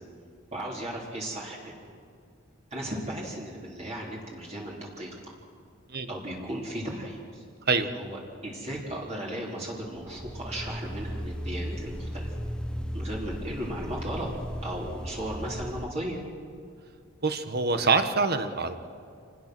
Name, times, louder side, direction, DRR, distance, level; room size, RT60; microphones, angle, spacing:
voice 1, 0.5-1.8 2.7-5.3 6.1-7.4 7.9-12.3 12.9-14.3 14.6-16.2, right 1 dB, 35° right, -3 dB, 3.4 m, -36 dB
sound 1, 9.9-15.9, equal, 5° left, 1.1 m, -36 dB
voice 2, 17.2-18.8, right 4 dB, 50° right, 9 dB, 1.4 m, -25 dB
27.0 x 19.5 x 6.2 m, 2.3 s
head